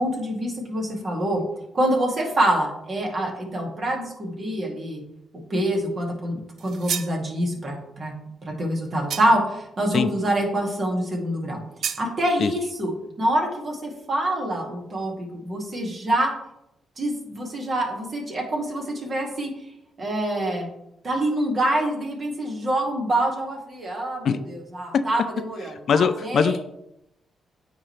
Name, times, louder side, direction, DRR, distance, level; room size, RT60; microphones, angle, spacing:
voice 1, 0.0-1.4 1.7-5.0 5.5-8.1 8.4-11.6 12.0-12.9 13.2-16.3 17.0-19.5 20.0-20.7 21.0-26.6, right 1 dB, 50° right, 0 dB, 2.3 m, -26 dB
sound 1, 6.6-7.2 9.1-9.5 11.8-12.1, right 8 dB, 65° right, 0.4 m, -30 dB
voice 2, 25.9-26.6, left 7 dB, 65° left, 12 dB, 0.4 m, -21 dB
9.3 x 3.9 x 3.3 m, 0.81 s
supercardioid pair, 55°, 0 cm